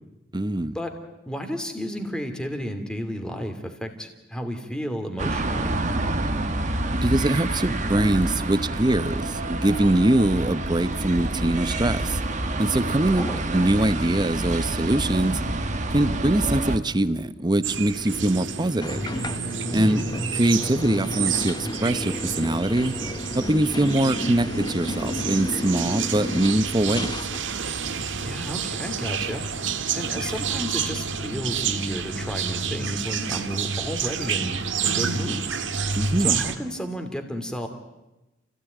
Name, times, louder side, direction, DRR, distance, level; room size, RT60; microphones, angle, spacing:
voice 1, 0.3-0.8 6.9-12.2 12.6-13.3 13.5-15.4 15.9-19.0 19.7-20.0 20.3-23.0 23.3-27.2 36.0-36.4, right 1 dB, 25° right, 14 dB, 0.8 m, -23 dB
voice 2, 1.3-5.8 13.2-13.4 19.8-20.1 28.2-29.4 29.9-34.7 34.9-35.4 36.2-37.7, equal, 5° left, 5 dB, 2.6 m, -32 dB
sound 1, 5.2-16.8, right 2 dB, 40° right, 1.6 m, -27 dB
sound 2, 17.6-36.5, right 6 dB, 80° right, 1.6 m, -29 dB
sound 3, 18.8-27.4, left 1 dB, 20° left, 0.8 m, -32 dB
29.0 x 16.5 x 9.3 m, 1.0 s
head